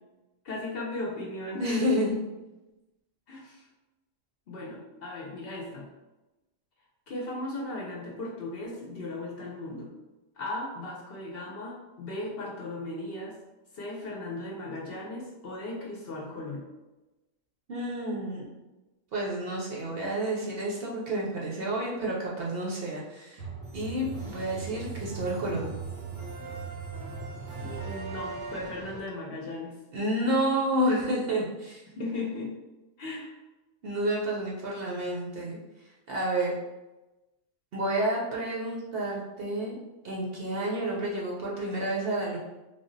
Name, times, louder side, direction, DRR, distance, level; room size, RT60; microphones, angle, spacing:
voice 1, 0.4-2.2 3.3-3.6 4.5-5.9 7.1-9.9 10.4-13.3 13.7-16.6 27.6-29.7 32.0-32.5 33.0-33.3, left 2 dB, 55° left, -2 dB, 0.8 m, -36 dB
voice 2, 1.6-2.1 17.7-18.5 19.1-23.4 23.7-25.7 29.9-31.8 33.8-35.6 36.1-36.5 37.7-39.8 40.0-42.4, right 1 dB, 55° right, -4 dB, 0.8 m, -30 dB
sound 1, 23.4-29.0, right 4 dB, 90° right, 1.5 m, -38 dB
3.4 x 2.0 x 3.8 m, 1.1 s
omnidirectional pair, 1.3 m